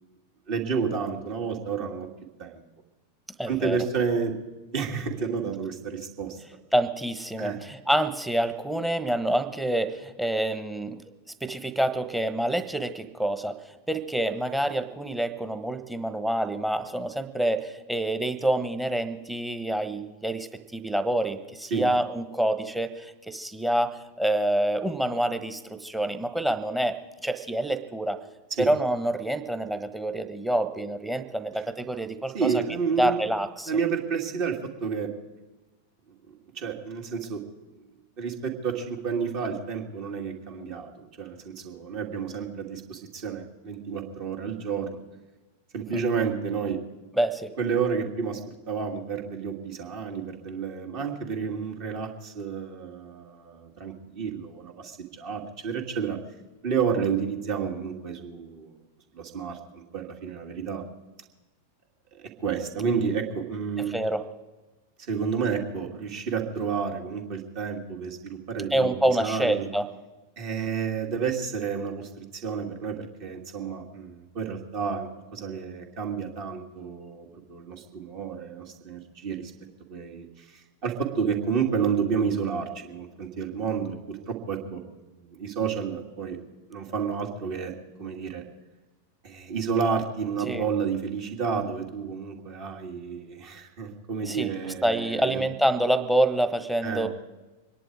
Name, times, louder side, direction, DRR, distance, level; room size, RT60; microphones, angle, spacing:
voice 1, 0.5-2.1 2.4-2.6 3.5-4.4 4.7-6.4 7.4-7.6 21.7-21.8 28.6-28.7 32.3-33.2 33.7-35.1 36.5-37.4 38.2-45.0 45.7-46.8 47.6-48.4 48.7-56.2 56.6-58.7 59.1-60.8 62.1-63.9 65.0-69.7 70.4-79.5 79.9-84.8 85.2-86.4 86.7-88.4 89.2-95.4 96.8-97.1, right 6 dB, 45° right, 2 dB, 2.7 m, -30 dB
voice 2, 3.4-3.8 6.7-11.0 11.4-28.2 28.6-32.5 33.0-33.7 45.9-46.0 47.1-47.5 63.8-64.3 68.7-69.9 90.5-90.6 94.3-97.1, right 1 dB, 5° right, 8 dB, 1.2 m, -27 dB
25.0 x 10.5 x 4.8 m, 1.1 s
figure-of-eight pair, 90°, 0 cm